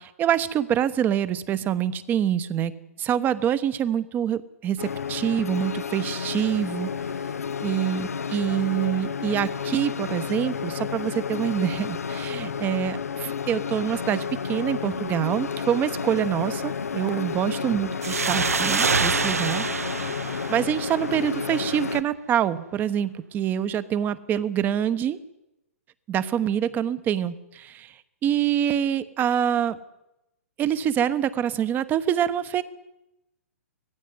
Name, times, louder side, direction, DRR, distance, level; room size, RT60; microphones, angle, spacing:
voice 1, 0.0-2.7 3.0-6.9 7.6-19.6 20.5-25.2 26.1-27.9 28.2-29.8 30.6-32.6, right 9 dB, 25° right, 14 dB, 1.1 m, -25 dB
sound 1, 4.8-22.0, left 6 dB, 85° left, 0.8 m, -31 dB
sound 2, 18.0-21.4, right 4 dB, 85° right, 1.1 m, -26 dB
18.0 x 15.5 x 9.5 m, 0.90 s
hypercardioid pair, 125°, 8 cm